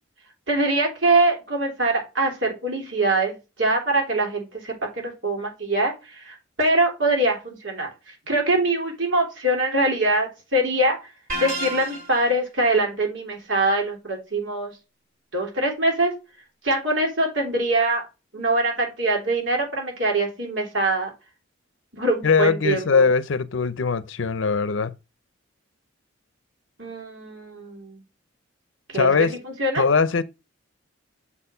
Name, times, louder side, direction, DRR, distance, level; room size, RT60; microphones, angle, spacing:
voice 1, 0.5-11.0 11.4-14.7 15.3-16.1 16.6-18.0 18.3-21.1 21.9-23.0 26.8-28.0 28.9-29.1 29.4-29.8, right 2 dB, 65° right, 3.1 m, -23 dB
sound 1, 11.3-12.3, right 1 dB, 45° right, 2.4 m, -30 dB
voice 2, 22.2-24.9 28.9-29.3 29.8-30.2, left 5 dB, 65° left, 0.6 m, -21 dB
7.1 x 4.4 x 5.5 m
head